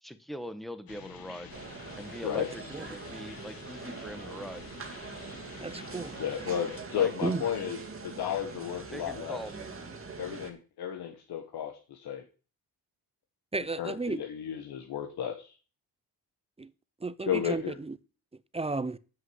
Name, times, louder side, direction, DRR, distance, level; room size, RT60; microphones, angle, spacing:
voice 1, 0.0-1.5 2.0-4.7 7.0-7.1 8.9-9.8, equal, ahead, 1.2 m, -42 dB
sound 1, 0.9-6.8, left 7 dB, 60° left, 1.5 m, -49 dB
sound 2, 1.5-10.5, right 4 dB, 35° right, 1.8 m, -43 dB
voice 2, 5.6-6.1 7.2-7.4 13.5-14.2 16.6-16.7 17.0-18.0 18.5-19.0, right 3 dB, 15° right, 0.6 m, -33 dB
voice 3, 6.2-9.4 10.2-12.2 13.8-15.5 17.2-17.7, left 9 dB, 80° left, 1.5 m, -33 dB
7.6 x 6.3 x 7.9 m
cardioid pair, 95°, 39 cm